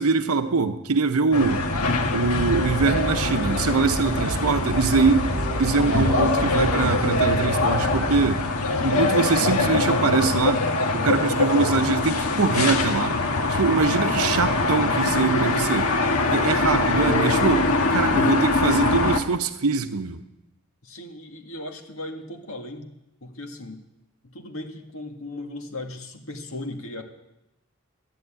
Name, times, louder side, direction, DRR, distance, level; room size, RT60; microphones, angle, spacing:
voice 1, 0.0-1.6 2.1-5.3 5.6-8.4 8.8-10.6 10.9-13.1 13.5-15.9 16.3-20.2, right 4 dB, 80° right, 8 dB, 0.9 m, -23 dB
sound 1, 1.3-19.2, left 3 dB, 85° left, 1.4 m, -23 dB
sound 2, 2.2-8.3, right 1 dB, 5° left, 4.5 m, -31 dB
voice 2, 20.8-22.9 23.2-23.8 24.2-27.0, left 1 dB, 70° left, 4 dB, 1.9 m, -37 dB
13.5 x 10.5 x 8.9 m, 0.91 s
head